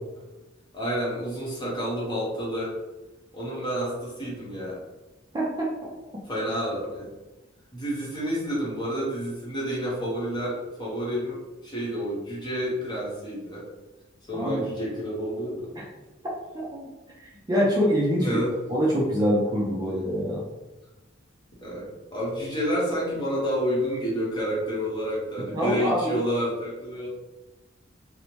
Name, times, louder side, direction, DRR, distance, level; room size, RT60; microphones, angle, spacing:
voice 1, 0.7-2.8 3.3-4.8 6.2-7.1 7.7-13.6 14.3-15.7 18.2-18.5 21.6-27.1, equal, 25° left, -6 dB, 1.0 m, -29 dB
voice 2, 5.3-5.7 14.3-14.6 15.8-15.9 16.5-16.9 17.2-18.4 18.7-20.4 25.4-26.2, equal, 20° right, -4 dB, 0.4 m, -25 dB
2.7 x 2.1 x 3.0 m, 1.1 s
head